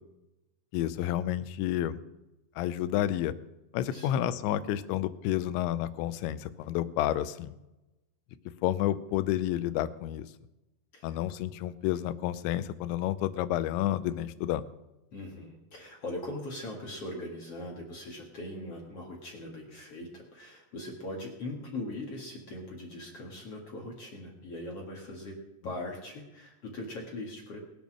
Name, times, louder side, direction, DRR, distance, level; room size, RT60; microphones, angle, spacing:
voice 1, 0.7-2.0 2.6-3.3 3.7-7.5 8.6-10.3 11.0-14.6, left 13 dB, 85° left, 13 dB, 3.0 m, -30 dB
voice 2, 3.9-4.3 10.9-11.2 15.1-27.6, left 1 dB, 45° left, -2 dB, 2.1 m, -40 dB
21.5 x 7.1 x 6.2 m, 0.98 s
omnidirectional pair, 5.1 m